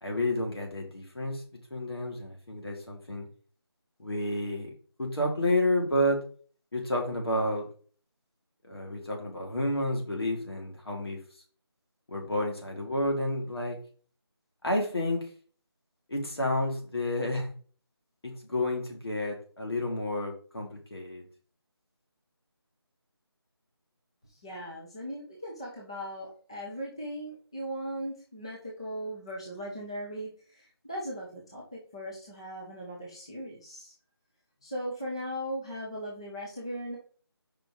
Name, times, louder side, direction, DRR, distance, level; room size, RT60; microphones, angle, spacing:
voice 1, 0.0-1.4 1.7-3.3 4.0-4.7 5.0-6.2 6.7-7.6 8.7-11.2 12.1-13.8 14.6-15.3 16.1-17.5 18.2-21.2, left 1 dB, 70° left, 1 dB, 2.5 m, -30 dB
voice 2, 24.3-33.9 34.6-37.0, equal, 10° left, -5 dB, 0.7 m, -38 dB
5.1 x 4.3 x 4.8 m, 0.43 s
figure-of-eight pair, 175°, 14 cm